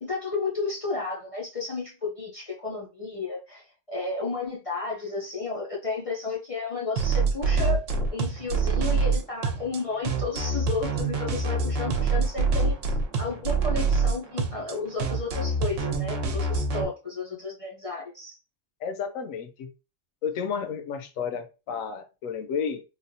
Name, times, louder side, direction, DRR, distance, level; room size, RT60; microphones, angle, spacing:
voice 1, 0.0-18.4, left 3 dB, 55° left, 0.3 m, -33 dB
sound 1, 7.0-16.8, right 4 dB, 70° right, 0.9 m, -25 dB
voice 2, 18.8-19.7 20.2-22.8, left 6 dB, 80° left, 1.0 m, -32 dB
3.3 x 2.2 x 2.6 m
omnidirectional pair, 1.4 m